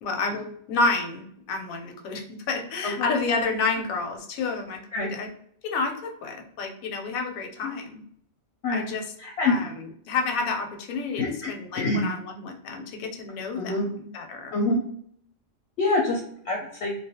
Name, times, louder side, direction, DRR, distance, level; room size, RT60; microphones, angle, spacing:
voice 1, 0.0-5.3 5.6-8.0 8.7-9.0 9.4-14.6, left 3 dB, 85° left, 3 dB, 1.0 m, -30 dB
voice 2, 9.2-9.6 11.2-12.0 13.6-13.9 14.5-14.8 15.8-16.9, left 2 dB, 65° left, -1 dB, 0.7 m, -26 dB
2.3 x 2.1 x 2.7 m, 0.65 s
omnidirectional pair, 1.4 m